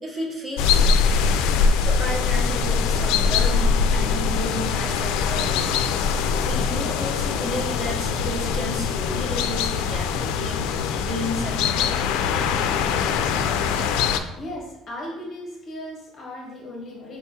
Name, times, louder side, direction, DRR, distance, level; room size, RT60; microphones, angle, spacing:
voice 1, 0.0-1.1 1.8-5.8 6.4-10.6 11.0-11.9, equal, 20° right, -3 dB, 1.0 m, -32 dB
sound 1, 0.6-14.2, left 6 dB, 90° left, 0.3 m, -22 dB
voice 2, 14.2-17.2, left 1 dB, 25° left, -2 dB, 1.2 m, -36 dB
4.5 x 3.5 x 2.8 m, 1.0 s
cardioid pair, 170°, 0 cm